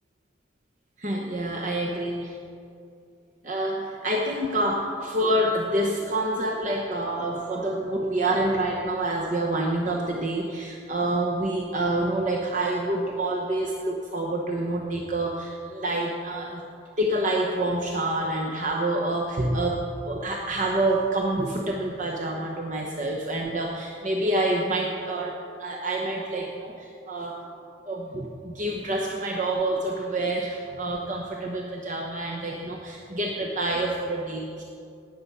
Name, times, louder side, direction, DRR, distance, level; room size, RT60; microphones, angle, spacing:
voice 1, 1.0-2.4 3.4-16.6 17.0-27.4 27.9-34.6, right 1 dB, 40° right, -1 dB, 1.0 m, -27 dB
18.5 x 7.8 x 5.6 m, 2.5 s
head